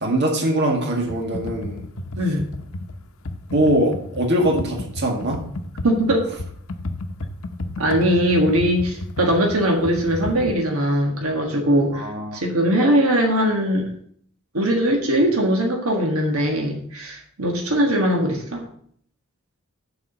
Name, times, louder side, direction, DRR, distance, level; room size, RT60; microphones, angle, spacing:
voice 1, 0.0-1.9 3.5-5.4 11.9-12.4, right 1 dB, 55° right, 1 dB, 1.8 m, -22 dB
Computer keyboard, 1.0-10.5, left 2 dB, 70° left, 0.8 m, -32 dB
voice 2, 5.8-6.3 7.8-13.9 14.5-18.6, equal, 85° right, 2 dB, 1.5 m, -20 dB
7.0 x 4.8 x 7.0 m, 0.63 s
head